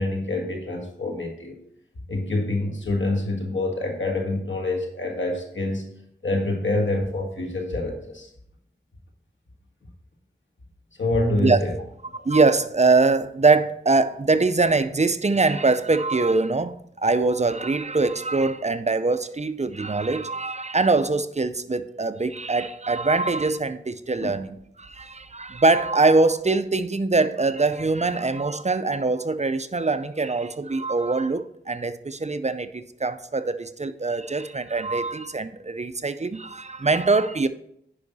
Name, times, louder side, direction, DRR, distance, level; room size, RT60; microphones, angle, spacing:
voice 1, 0.0-1.6 2.1-5.9 6.2-8.3 11.0-11.7 12.1-12.3 24.2-24.3, left 2 dB, 90° left, 1.7 m, -26 dB
voice 2, 12.2-37.5, right 3 dB, 35° right, 0.5 m, -23 dB
9.8 x 5.4 x 4.1 m
wide cardioid pair, 50°, 19 cm